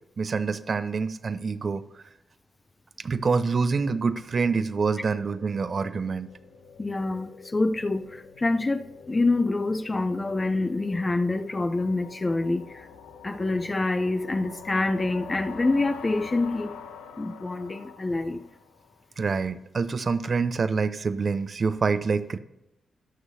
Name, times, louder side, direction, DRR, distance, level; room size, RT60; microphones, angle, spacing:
voice 1, 0.2-2.0 3.0-6.3 19.2-22.4, right 4 dB, 50° right, 0.5 m, -26 dB
sound 1, 4.0-19.0, left 6 dB, 80° left, 0.6 m, -45 dB
voice 2, 6.8-12.9 13.2-16.8 17.2-18.4, left 2 dB, 30° left, 0.6 m, -26 dB
17.5 x 6.2 x 2.7 m
hypercardioid pair, 40°, 0 cm